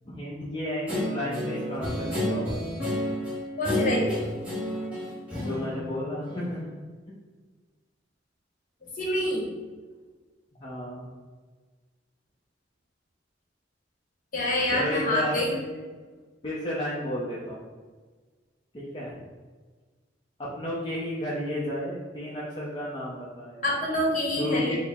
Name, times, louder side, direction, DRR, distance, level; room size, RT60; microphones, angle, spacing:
voice 1, 0.0-2.7 5.5-6.6 10.6-11.1 14.7-15.8 16.4-17.6 18.7-19.2 20.4-23.6 24.4-24.8, left 1 dB, 25° left, -7 dB, 0.5 m, -32 dB
Guitar, 0.9-6.7, left 1 dB, 5° right, 1.0 m, -31 dB
voice 2, 3.6-4.3 8.9-9.5 14.3-15.5 23.6-24.8, left 1 dB, 45° left, -3 dB, 1.0 m, -26 dB
4.6 x 2.0 x 3.5 m, 1.4 s
head